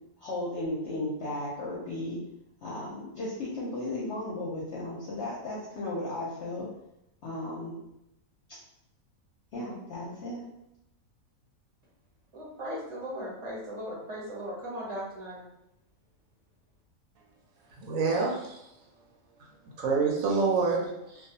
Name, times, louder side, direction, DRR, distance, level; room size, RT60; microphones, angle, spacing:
voice 1, 0.2-2.2 2.6-6.6 7.2-7.8 9.5-10.4, left 1 dB, 60° left, -6 dB, 0.8 m, -35 dB
voice 2, 12.3-15.4, equal, 30° right, -5 dB, 0.6 m, -37 dB
voice 3, 17.8-18.7 19.8-21.3, right 4 dB, 75° right, -2 dB, 1.0 m, -27 dB
2.4 x 2.2 x 2.7 m, 0.82 s
omnidirectional pair, 1.5 m